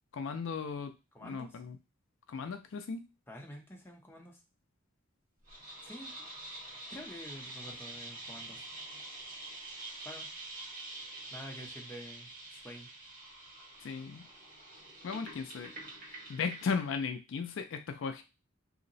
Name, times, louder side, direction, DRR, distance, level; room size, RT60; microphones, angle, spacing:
voice 1, 0.1-0.9 1.2-1.8 2.3-3.0 13.8-14.2 15.0-15.7 16.1-18.2, left 5 dB, 65° left, 8 dB, 0.4 m, -36 dB
voice 2, 1.1-1.6 3.3-4.4 5.8-6.1 6.9-8.6 10.0-10.3 11.3-12.9, equal, 10° left, 0 dB, 0.7 m, -48 dB
sound 1, 5.5-17.0, right 2 dB, 45° right, 1.3 m, -46 dB
2.8 x 2.0 x 3.9 m, 0.27 s
head